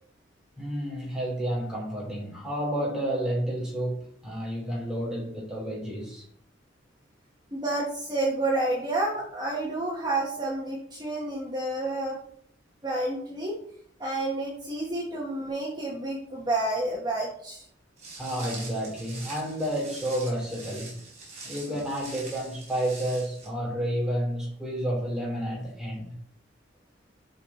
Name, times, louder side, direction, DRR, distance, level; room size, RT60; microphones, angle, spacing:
voice 1, 0.6-6.2 18.2-20.9 21.4-26.1, equal, 5° right, -4 dB, 3.7 m, -30 dB
voice 2, 7.5-12.2 12.8-13.6 14.0-17.6, right 2 dB, 20° right, -3 dB, 1.5 m, -29 dB
Walk footsteps, 18.0-23.5, right 3 dB, 40° right, 4.1 m, -44 dB
11.0 x 4.8 x 4.4 m, 0.62 s
head